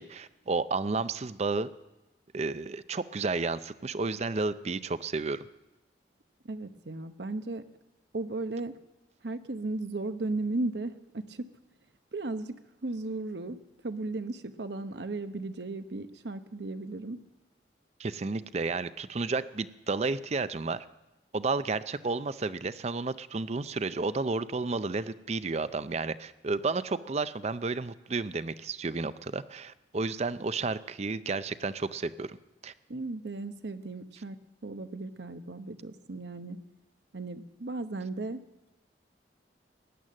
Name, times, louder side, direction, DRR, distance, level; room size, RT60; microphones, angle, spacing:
voice 1, 0.0-1.7 2.3-5.5 18.0-20.9 21.3-32.4 32.6-32.7, right 3 dB, 40° right, 14 dB, 0.5 m, -32 dB
voice 2, 6.4-7.6 8.1-8.7 9.2-11.5 12.1-12.6 12.8-13.6 13.8-17.2 32.9-34.4 34.6-36.6 37.1-38.4, right 2 dB, 75° right, 9 dB, 0.9 m, -35 dB
16.0 x 10.5 x 7.5 m, 1.0 s
head